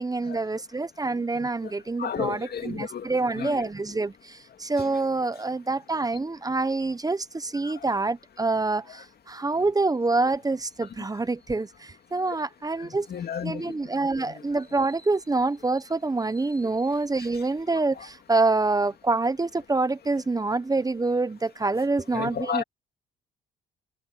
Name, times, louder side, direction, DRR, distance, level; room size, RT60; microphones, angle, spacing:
voice 1, 0.0-13.1 13.4-22.6, right 3 dB, 20° right, 1.0 m, -26 dB
voice 2, 2.0-3.1 3.4-3.5 13.1-13.7 22.1-22.6, left 8 dB, 55° left, 2.3 m, -31 dB
cardioid pair, 90°, 20 cm